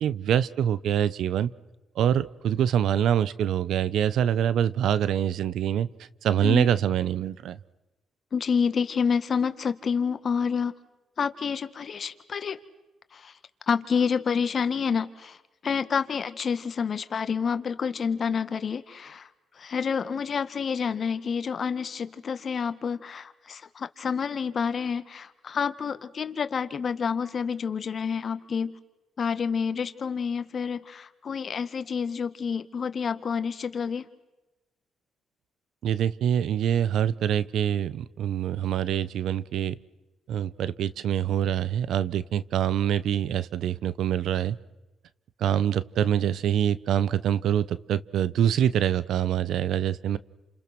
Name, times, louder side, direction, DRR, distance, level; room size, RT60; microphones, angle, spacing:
voice 1, 0.0-1.5 2.0-5.9 6.2-7.6 35.8-39.8 40.3-44.6 45.4-50.2, right 10 dB, 75° right, 18 dB, 0.9 m, -25 dB
voice 2, 8.3-10.7 11.2-12.6 13.1-13.3 13.7-15.4 15.6-19.3 19.6-28.8 29.2-34.1, left 6 dB, 45° left, 11 dB, 1.8 m, -28 dB
30.0 x 28.0 x 6.1 m, 1.0 s
cardioid pair, 90°, 0 cm